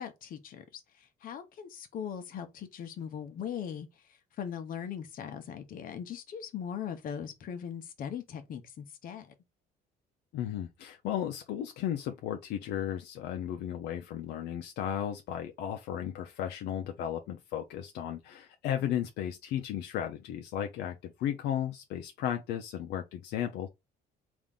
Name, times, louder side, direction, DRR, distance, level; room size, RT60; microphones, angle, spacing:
voice 1, 0.0-9.3, left 8 dB, 55° left, 0.9 m, -40 dB
voice 2, 10.3-23.7, left 10 dB, 80° left, 0.6 m, -35 dB
3.6 x 2.6 x 3.5 m
cardioid pair, 110°, 17 cm